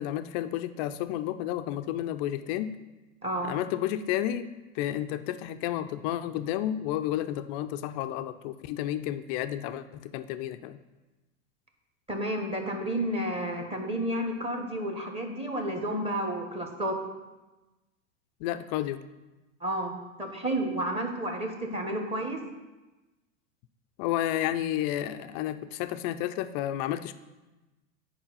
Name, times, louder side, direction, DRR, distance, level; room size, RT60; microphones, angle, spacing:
voice 1, 0.0-2.8 3.4-10.8 18.4-19.0 24.0-27.1, left 12 dB, 30° left, 10 dB, 0.4 m, -31 dB
voice 2, 12.1-17.0 19.6-19.9 20.2-22.4, right 1 dB, 15° right, 3 dB, 1.3 m, -31 dB
8.7 x 4.9 x 5.5 m, 1.1 s
hypercardioid pair, 100°, 40 cm